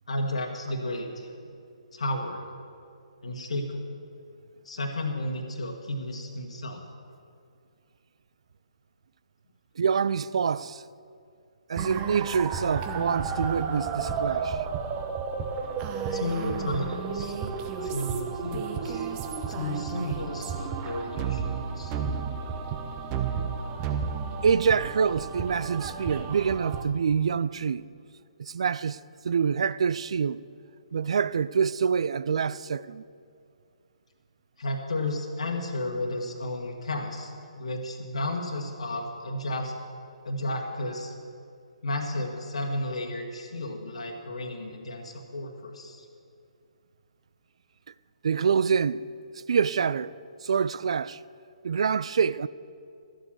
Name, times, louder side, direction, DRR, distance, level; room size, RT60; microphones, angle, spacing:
voice 1, 0.1-1.3 1.9-2.5 3.2-3.8 4.6-6.8 16.1-17.4 17.8-19.1 19.5-21.9 34.6-39.7 40.2-41.1 41.8-46.0, left 1 dB, 70° left, 1.5 m, -33 dB
voice 2, 9.8-10.8 11.7-14.7 24.4-27.9 28.4-29.0 29.2-30.4 30.9-33.0 48.2-49.1 49.3-50.2 50.4-51.2 51.6-52.5, right 6 dB, 60° right, 0.3 m, -26 dB
sound 1, 11.7-26.8, right 6 dB, 25° right, 0.9 m, -32 dB
12.5 x 7.8 x 7.3 m
figure-of-eight pair, 135°, 4 cm